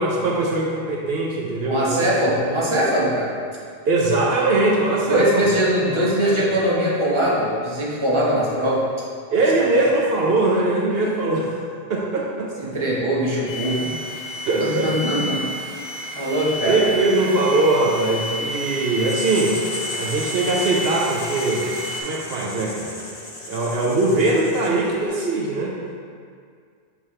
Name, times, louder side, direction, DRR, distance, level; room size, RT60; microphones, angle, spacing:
voice 1, 0.0-2.3 3.9-5.5 5.9-6.4 9.3-11.6 11.9-12.8 14.4-14.9 16.6-19.6 20.0-21.7 22.0-22.9 23.5-25.8, right 2 dB, 75° right, -3 dB, 0.9 m, -21 dB
voice 2, 1.7-3.3 5.1-8.8 9.7-9.8 12.6-13.9 14.6-15.7 16.1-16.8, right 1 dB, 30° right, -7 dB, 1.2 m, -21 dB
sound 1, 13.5-22.0, equal, 60° left, 1.5 m, -31 dB
Writing, 19.1-25.0, left 1 dB, 40° left, 0.8 m, -35 dB
6.0 x 5.3 x 3.2 m, 2.2 s
omnidirectional pair, 1.0 m